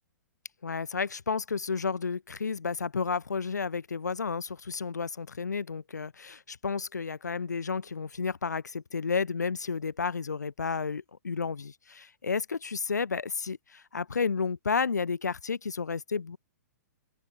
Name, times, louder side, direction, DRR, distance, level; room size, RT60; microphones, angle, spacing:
voice 1, 0.6-16.4, left 5 dB, 75° left, 0.9 m, -32 dB
open air
figure-of-eight pair, 115°, 9 cm